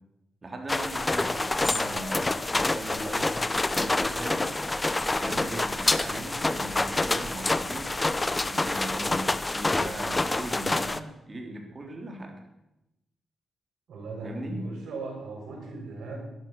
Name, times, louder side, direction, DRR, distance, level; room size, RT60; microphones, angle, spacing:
voice 1, 0.4-3.4 3.7-4.5 5.2-7.9 8.5-12.4 14.2-14.7, right 1 dB, 35° right, 3 dB, 3.5 m, -39 dB
sound 1, 0.7-11.0, left 2 dB, 25° left, 0.8 m, -27 dB
sound 2, 4.9-10.4, right 2 dB, 55° right, 3.0 m, -49 dB
voice 2, 13.9-16.2, right 3 dB, 75° right, -1 dB, 5.9 m, -38 dB
11.5 x 11.0 x 6.7 m, 0.92 s
supercardioid pair, 50°, 0 cm